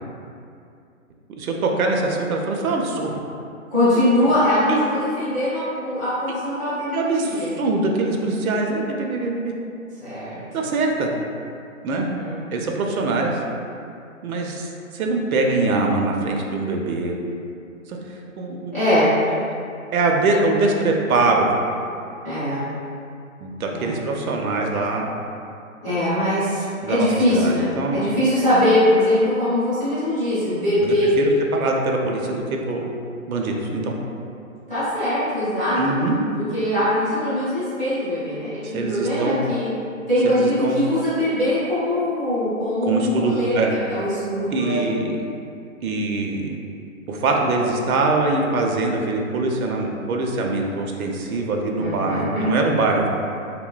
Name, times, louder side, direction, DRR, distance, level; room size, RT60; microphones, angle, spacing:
voice 1, 1.3-3.2 3.9-4.0 4.7-4.8 6.9-9.5 10.5-11.1 11.8-12.1 12.5-13.4 14.2-17.2 17.9-18.0 18.4-18.7 19.9-21.5 23.4-25.1 26.8-28.0 30.8-32.8 33.3-34.0 35.8-36.2 38.6-39.4 40.2-40.9 42.8-43.7 44.5-45.2 45.8-46.5 47.1-53.1, right 3 dB, 90° right, 1 dB, 0.5 m, -23 dB
voice 2, 3.7-7.5 10.0-10.4 11.9-12.4 18.7-19.1 22.2-22.6 23.7-23.9 25.8-31.1 34.7-35.8 36.4-39.7 40.1-44.8 51.8-52.5, left 1 dB, 10° left, -19 dB, 0.6 m, -22 dB
2.6 x 2.1 x 2.3 m, 2.5 s
hypercardioid pair, 155°, 41 cm